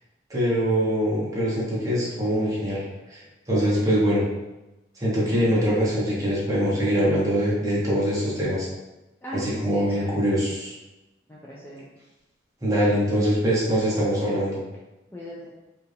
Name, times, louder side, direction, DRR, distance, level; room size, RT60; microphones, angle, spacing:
voice 1, 0.3-2.8 3.1-3.2 3.5-4.2 5.0-8.7 9.3-10.7 12.6-14.6, equal, 20° right, -7 dB, 1.2 m, -23 dB
voice 2, 9.2-10.2 11.3-11.8 15.1-15.5, equal, 10° left, -7 dB, 0.5 m, -37 dB
4.7 x 2.5 x 3.3 m, 1.0 s
head